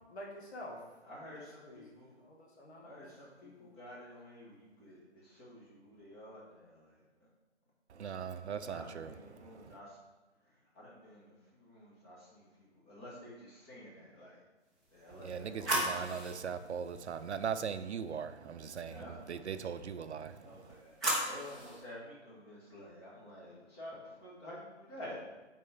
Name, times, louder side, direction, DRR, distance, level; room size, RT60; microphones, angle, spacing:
voice 1, 0.1-3.0 3.4-3.7, left 1 dB, 65° left, 2.1 m, -50 dB
voice 2, 1.1-2.2 2.8-6.9 8.6-9.9 10.8-12.5 12.9-14.4 14.9-16.0 18.6-19.1 20.4-21.0 21.2-25.2, left 1 dB, 20° left, 2.0 m, -50 dB
voice 3, 7.9-9.7 15.2-20.5, right 7 dB, 70° right, 0.6 m, -40 dB
sound 1, 14.8-17.9 20.3-21.8, right 1 dB, ahead, 0.8 m, -38 dB
8.3 x 4.5 x 3.6 m
hypercardioid pair, 155°, 35 cm